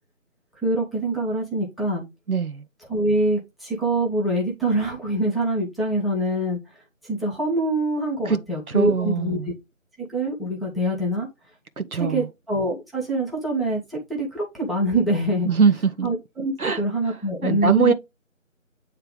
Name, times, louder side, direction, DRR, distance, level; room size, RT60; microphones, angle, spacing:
voice 1, 0.6-2.0 2.9-9.5 10.0-11.3 11.8-15.5 16.0-17.9, right 1 dB, ahead, 0.8 m, -25 dB
voice 2, 2.3-2.6 8.3-8.4 8.7-9.5 11.8-12.3 15.5-16.1 16.6-16.8 17.4-17.9, right 5 dB, 90° right, 1.2 m, -22 dB
9.3 x 3.3 x 3.7 m
figure-of-eight pair, 180°, 42 cm